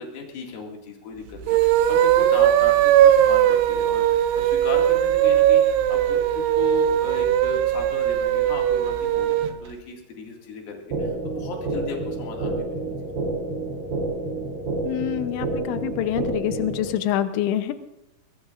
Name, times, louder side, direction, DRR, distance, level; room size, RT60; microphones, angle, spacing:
voice 1, 0.0-12.7, left 4 dB, 60° left, 0 dB, 3.8 m, -36 dB
sound 1, 1.4-9.6, right 11 dB, 90° right, 3.2 m, -19 dB
sound 2, 10.9-16.9, right 3 dB, 60° right, 5.2 m, -29 dB
voice 2, 14.9-17.7, left 12 dB, 90° left, 10 dB, 3.2 m, -26 dB
22.5 x 20.0 x 2.5 m, 0.93 s
omnidirectional pair, 5.2 m